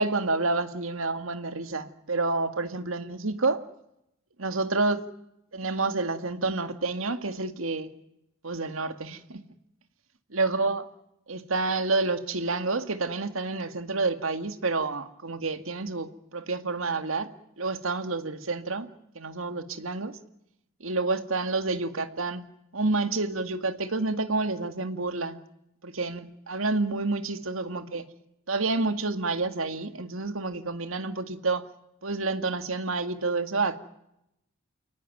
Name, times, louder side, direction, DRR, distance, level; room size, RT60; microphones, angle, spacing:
voice 1, 0.0-3.6 4.4-5.0 5.5-7.9 8.4-9.4 10.3-10.8 11.3-17.3 17.6-18.9 19.2-20.2 20.8-22.4 22.7-25.4 25.8-28.0 28.5-31.6 32.0-33.8, right 3 dB, 75° right, 9 dB, 2.0 m, -29 dB
29.5 x 18.0 x 9.4 m, 0.84 s
head